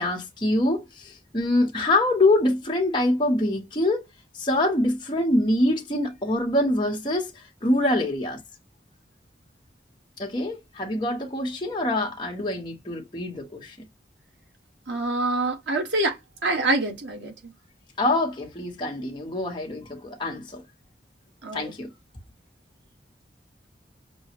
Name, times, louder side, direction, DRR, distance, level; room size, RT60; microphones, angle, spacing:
voice 1, 0.0-4.1 4.3-8.4 10.2-13.8 18.0-20.6 21.5-21.9, left 1 dB, 25° left, 1.2 m, -25 dB
voice 2, 14.9-17.5 21.4-21.7, right 2 dB, 90° right, 1.6 m, -26 dB
6.2 x 2.3 x 3.0 m
head